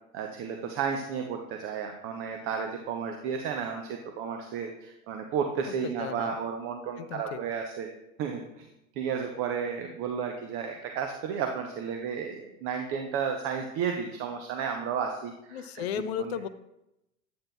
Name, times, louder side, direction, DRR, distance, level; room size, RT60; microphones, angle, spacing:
voice 1, 0.1-7.9 8.2-8.7 9.0-16.3, right 6 dB, 30° right, 4 dB, 0.8 m, -33 dB
voice 2, 5.8-6.3 7.0-7.4 15.5-16.5, left 8 dB, 50° left, 13 dB, 0.6 m, -34 dB
9.4 x 8.7 x 2.3 m, 0.88 s
figure-of-eight pair, 85°, 41 cm